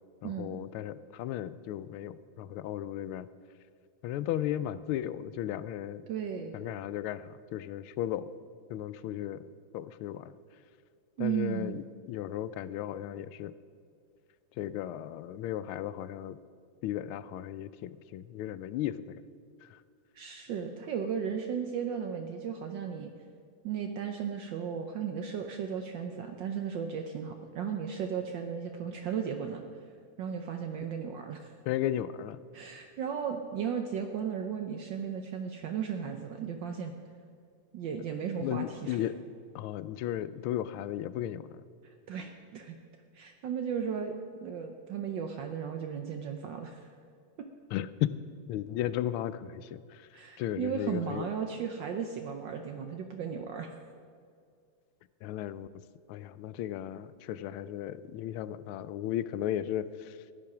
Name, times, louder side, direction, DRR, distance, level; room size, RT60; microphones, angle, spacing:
voice 1, 0.2-3.3 4.0-6.0 6.5-8.3 8.7-9.4 9.7-10.3 11.2-13.5 14.6-16.4 16.8-19.2 19.6-19.8 31.7-32.4 38.4-39.1 39.5-41.6 47.7-48.2 48.5-50.1 50.4-51.3 55.2-55.7 56.1-60.3, left 12 dB, 80° left, 16 dB, 1.4 m, -35 dB
voice 2, 6.1-6.6 11.2-11.8 20.1-23.1 23.6-29.6 30.2-31.5 32.5-36.9 37.7-39.0 42.1-42.8 43.1-44.1 44.4-46.9 50.1-53.7, right 7 dB, 65° right, 5 dB, 1.3 m, -35 dB
15.0 x 10.0 x 6.0 m, 2.2 s
omnidirectional pair, 2.4 m